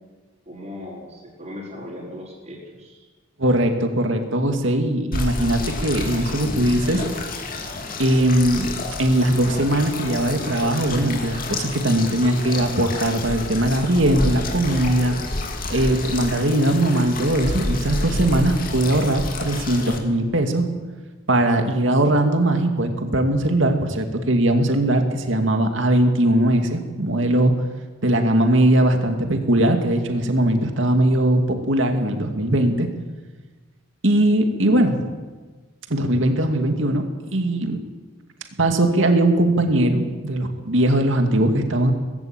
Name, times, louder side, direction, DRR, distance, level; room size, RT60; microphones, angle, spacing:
voice 1, 0.4-3.1, left 1 dB, 35° right, -7 dB, 4.9 m, -38 dB
voice 2, 3.4-7.0 8.0-8.7 9.0-15.2 15.7-20.7 21.3-27.5 28.0-32.9 34.0-35.0 35.9-37.0 37.3-37.8 38.6-41.9, right 1 dB, 70° right, 5 dB, 2.4 m, -20 dB
sound 1, 5.1-20.0, left 2 dB, 45° left, 2.7 m, -29 dB
19.0 x 16.0 x 8.9 m, 1.3 s
head